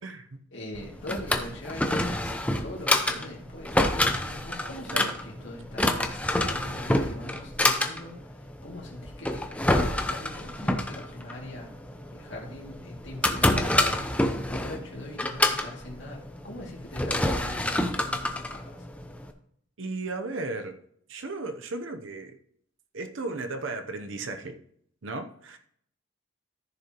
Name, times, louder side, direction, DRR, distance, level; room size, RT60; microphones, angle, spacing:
voice 1, 0.5-3.8 4.0-18.9, left 1 dB, 60° left, -2 dB, 2.3 m, -42 dB
Drawer open or close, 0.7-19.3, left 1 dB, 5° left, 0.6 m, -28 dB
voice 2, 19.8-20.7 21.1-22.4 22.9-24.6 25.0-25.6, right 3 dB, 65° right, 7 dB, 0.7 m, -35 dB
14.0 x 6.6 x 3.0 m, 0.67 s
head